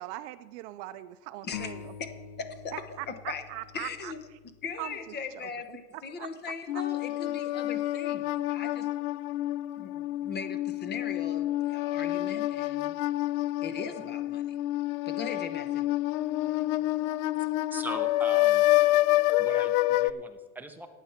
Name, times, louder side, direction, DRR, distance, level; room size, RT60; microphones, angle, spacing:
voice 1, 0.0-1.9 2.7-4.4 4.8-5.0 5.3-6.3 6.7-6.8, right 16 dB, 50° right, 13 dB, 0.5 m, -41 dB
voice 2, 1.4-1.8 2.4-2.7 3.1-3.4 3.7-4.2 4.6-8.9 9.8-13.0 13.6-14.6 15.1-15.8, left 5 dB, 25° left, 8 dB, 0.8 m, -39 dB
sound 1, 1.5-5.1, left 8 dB, 60° left, 1.3 m, -45 dB
sound 2, 6.7-20.1, left 16 dB, 75° left, 0.5 m, -28 dB
voice 3, 17.7-18.7 19.4-20.9, right 2 dB, 5° right, 5 dB, 0.6 m, -40 dB
15.0 x 9.2 x 4.3 m, 1.4 s
supercardioid pair, 145°, 43 cm